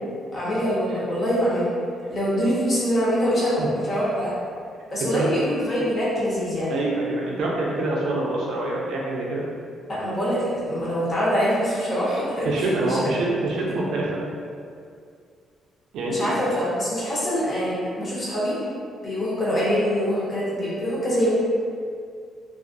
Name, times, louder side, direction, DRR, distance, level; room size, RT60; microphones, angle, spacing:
voice 1, 0.3-1.7 2.1-4.3 4.9-6.7 9.9-13.0 16.1-18.6 19.0-21.3, equal, 40° left, -9 dB, 0.9 m, -24 dB
voice 2, 5.0-5.3 6.7-9.4 12.4-14.2 15.9-16.4, right 2 dB, 80° right, -3 dB, 0.4 m, -25 dB
2.3 x 2.2 x 2.5 m, 2.3 s
cardioid pair, 90°, 0 cm